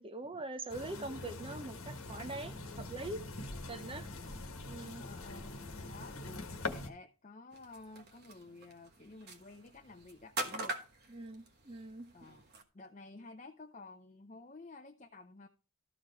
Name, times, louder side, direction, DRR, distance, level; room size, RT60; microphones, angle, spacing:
voice 1, 0.0-3.2 3.7-4.1 4.7-5.0 11.1-12.1, right 2 dB, 25° right, 0.7 m, -43 dB
sound 1, 0.7-6.9, left 2 dB, 65° left, 1.4 m, -43 dB
voice 2, 5.0-10.8 12.1-12.4 12.7-15.5, left 3 dB, 35° left, 0.6 m, -52 dB
sound 2, 7.5-12.6, right 2 dB, 45° right, 1.2 m, -44 dB
13.0 x 5.0 x 4.6 m
head